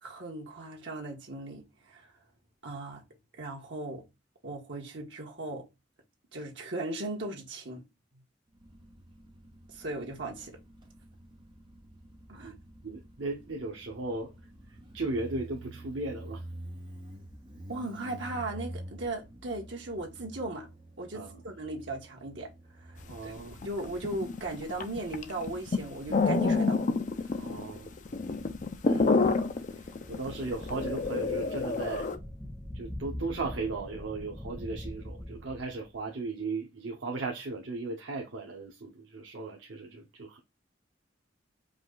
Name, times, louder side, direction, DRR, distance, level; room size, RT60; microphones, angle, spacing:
voice 1, 0.0-2.1 2.6-3.0 3.4-4.0 4.4-5.7 6.3-7.8 9.7-10.6 12.3-12.5 17.7-20.7 21.0-22.5 22.8-26.8 27.4-27.6 28.8-29.1, right 2 dB, 75° right, 1.5 m, -37 dB
Motorcycle, 8.5-25.7, right 1 dB, 25° right, 1.0 m, -48 dB
voice 2, 12.8-14.3 14.7-16.5 21.1-21.4 23.1-23.7 27.4-27.9 30.1-32.1 32.7-40.4, right 3 dB, 90° right, 0.8 m, -36 dB
sound 1, 23.1-23.2 23.4-32.2, left 4 dB, 45° left, 0.5 m, -28 dB
sound 2, 29.8-36.0, left 1 dB, ahead, 0.8 m, -43 dB
4.9 x 2.3 x 3.8 m
head